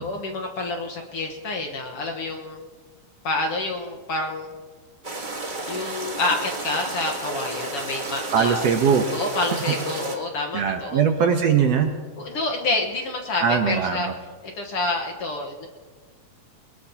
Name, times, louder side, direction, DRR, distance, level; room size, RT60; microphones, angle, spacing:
voice 1, 0.0-2.6 3.2-4.5 5.7-8.6 9.1-11.0 12.2-14.1 14.4-15.7, left 2 dB, 55° left, 2 dB, 1.9 m, -28 dB
sound 1, 5.0-10.2, right 2 dB, 40° right, 0.6 m, -32 dB
voice 2, 8.3-9.0 10.5-11.9 13.4-14.1, right 7 dB, 65° right, 4 dB, 1.8 m, -20 dB
22.0 x 20.0 x 2.9 m, 1.4 s
omnidirectional pair, 3.7 m